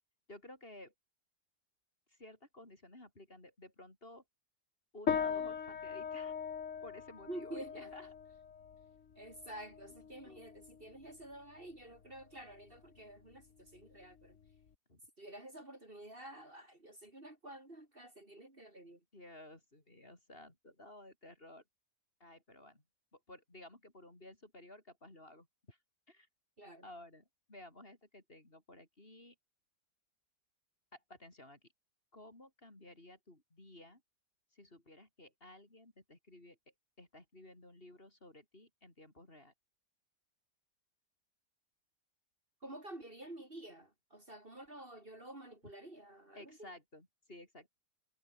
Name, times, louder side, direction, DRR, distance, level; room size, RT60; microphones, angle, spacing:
voice 1, 0.3-0.9 2.1-4.2 4.9-6.3 6.8-8.1 10.2-10.4 14.9-15.0 19.1-21.6 22.2-22.8 23.1-25.8 26.1-26.3 26.8-29.3 30.9-31.6 32.1-34.0 34.5-36.6 37.0-39.5 46.3-47.7, left 1 dB, 30° left, 4.5 m, -55 dB
sound 1, 5.1-14.7, left 7 dB, 45° left, 1.6 m, -41 dB
voice 2, 7.3-7.9 9.2-14.4 15.2-19.0 26.6-26.9 42.6-46.7, right 1 dB, 30° right, 3.5 m, -50 dB
omnidirectional pair, 1.9 m